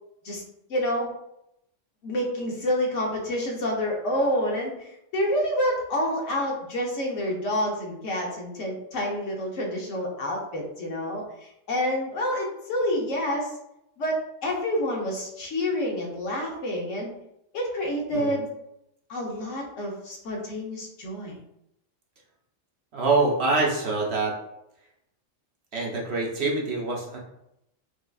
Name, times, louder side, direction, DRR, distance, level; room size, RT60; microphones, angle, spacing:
voice 1, 0.7-1.1 2.0-13.5 14.0-17.1 17.5-18.5 19.1-21.4, left 1 dB, 75° left, -1 dB, 1.1 m, -28 dB
voice 2, 22.9-24.4 25.7-27.2, right 3 dB, 60° right, -2 dB, 1.0 m, -25 dB
4.7 x 2.3 x 2.3 m, 0.81 s
omnidirectional pair, 1.3 m